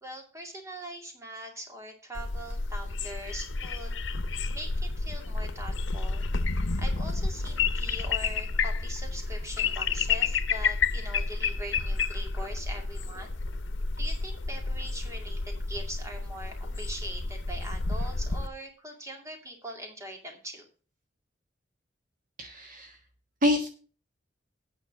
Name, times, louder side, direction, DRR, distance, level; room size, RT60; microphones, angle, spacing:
voice 1, 0.0-4.0 4.5-6.3 6.8-13.3 14.0-20.7, right 1 dB, 15° right, 2 dB, 2.4 m, -42 dB
sound 1, 2.2-18.5, left 4 dB, 85° left, 0.8 m, -30 dB
voice 2, 22.4-23.0 23.4-23.7, left 1 dB, 45° right, 3 dB, 1.5 m, -26 dB
9.1 x 5.5 x 7.2 m, 0.37 s
head